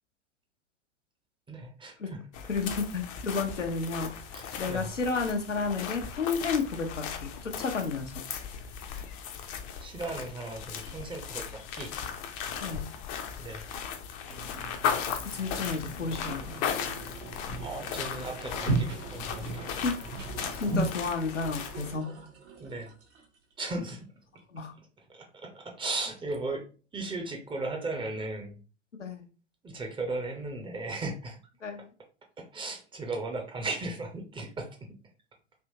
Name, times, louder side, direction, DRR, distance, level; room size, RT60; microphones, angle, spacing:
voice 1, 1.5-2.2 4.3-4.9 9.8-11.9 13.4-13.6 17.6-19.8 22.6-22.9 23.6-24.1 25.1-28.6 29.6-31.4 32.4-34.8, right 2 dB, 15° right, 3 dB, 0.6 m, -36 dB
sound 1, 2.3-21.9, left 7 dB, 35° left, 0.6 m, -37 dB
voice 2, 2.5-4.2 4.6-8.2 12.6-12.8 15.2-16.6 19.8-20.0 20.5-22.1 24.5-24.7 29.0-29.3 31.6-31.9, left 4 dB, 85° left, 3 dB, 0.7 m, -32 dB
sound 2, 14.3-20.8, right 3 dB, 90° right, 1.0 m, -36 dB
sound 3, 15.2-24.0 24.4-24.5, right 5 dB, 70° right, 1.2 m, -50 dB
3.4 x 2.8 x 2.7 m, 0.35 s
figure-of-eight pair, 85°, 36 cm